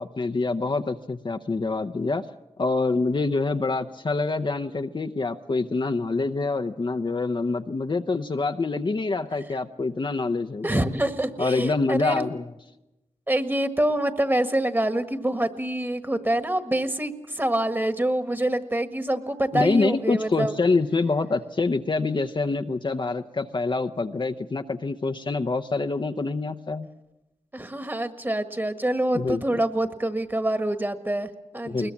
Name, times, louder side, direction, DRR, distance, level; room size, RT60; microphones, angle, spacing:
voice 1, 0.0-2.2 2.6-10.8 11.4-12.5 19.5-26.9 29.1-29.4 31.6-31.9, left 3 dB, 45° left, 6 dB, 0.8 m, -26 dB
voice 2, 10.6-12.3 13.3-20.5 27.5-31.9, right 1 dB, 20° right, 9 dB, 1.6 m, -26 dB
21.5 x 20.0 x 7.2 m, 0.98 s
cardioid pair, 60°, 11 cm